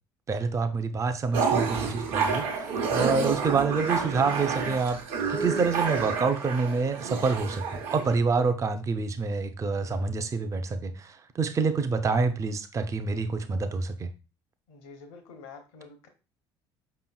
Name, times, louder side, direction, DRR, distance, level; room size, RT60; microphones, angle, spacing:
voice 1, 0.3-5.0 5.3-14.1, right 4 dB, 25° right, 0.4 m, -27 dB
sound 1, 1.3-8.2, right 5 dB, 65° right, 0.9 m, -29 dB
voice 2, 14.7-16.1, left 4 dB, 70° left, 0.9 m, -47 dB
5.0 x 2.9 x 2.3 m
hypercardioid pair, 60°, 14 cm